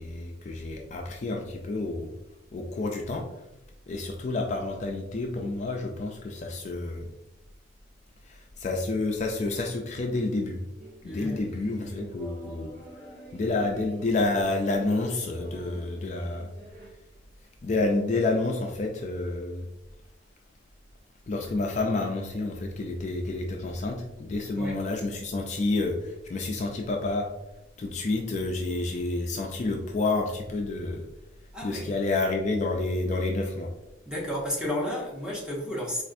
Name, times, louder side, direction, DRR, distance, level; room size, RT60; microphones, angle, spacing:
voice 1, 0.0-2.1 2.5-3.2 3.9-7.1 8.2-10.6 11.0-12.7 13.3-16.5 17.6-19.7 21.3-27.3 27.8-31.1 31.6-33.7, left 2 dB, 40° left, 1 dB, 0.4 m, -29 dB
sound 1, 10.8-16.9, right 1 dB, 60° right, 1.0 m, -46 dB
voice 2, 11.0-11.4 24.5-24.8 31.5-31.9 34.1-36.0, equal, 5° right, -3 dB, 0.8 m, -32 dB
4.3 x 2.5 x 2.5 m, 0.91 s
head